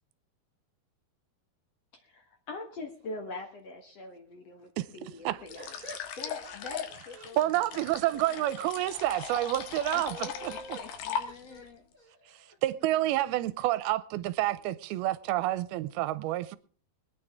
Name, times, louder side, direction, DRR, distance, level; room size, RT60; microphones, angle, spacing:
voice 1, 1.9-5.8 6.2-7.7 8.3-9.3 9.9-11.8, left 3 dB, 55° left, 2.1 m, -44 dB
sound 1, 5.5-11.7, left 8 dB, 80° left, 3.3 m, -39 dB
voice 2, 5.5-6.8 7.1-7.4 8.0-8.3 10.1-10.8 11.2-12.6 14.6-14.7, equal, 25° right, 2.3 m, -48 dB
voice 3, 7.4-10.5 12.6-16.6, right 15 dB, 80° right, 2.6 m, -29 dB
23.5 x 9.4 x 3.5 m
omnidirectional pair, 4.5 m